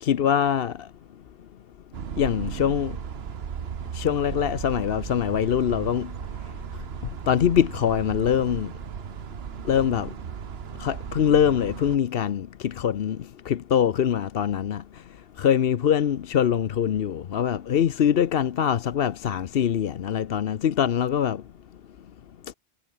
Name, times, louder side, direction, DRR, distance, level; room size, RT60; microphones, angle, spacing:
voice 1, 0.0-0.7 2.2-2.9 3.9-6.1 7.3-8.7 9.7-10.1 10.8-13.2 13.5-14.8 15.4-21.4, left 9 dB, 60° left, 0.9 m, -23 dB
sound 1, 1.9-12.0, right 8 dB, 65° right, 1.2 m, -36 dB
omnidirectional pair, 1.2 m